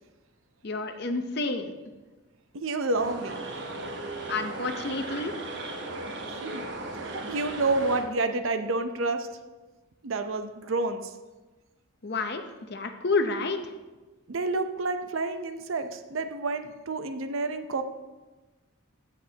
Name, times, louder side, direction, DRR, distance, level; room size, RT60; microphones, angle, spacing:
voice 1, 0.6-1.7 4.3-5.3 12.0-12.4 12.7-13.6, left 3 dB, 50° left, 7 dB, 0.7 m, -29 dB
voice 2, 2.5-3.4 6.4-6.7 6.9-9.3 10.0-11.1 14.3-17.8, right 3 dB, 70° right, 8 dB, 0.7 m, -29 dB
sound 1, 2.9-8.1, right 2 dB, 55° right, 1.0 m, -36 dB
15.0 x 6.7 x 2.8 m, 1.2 s
head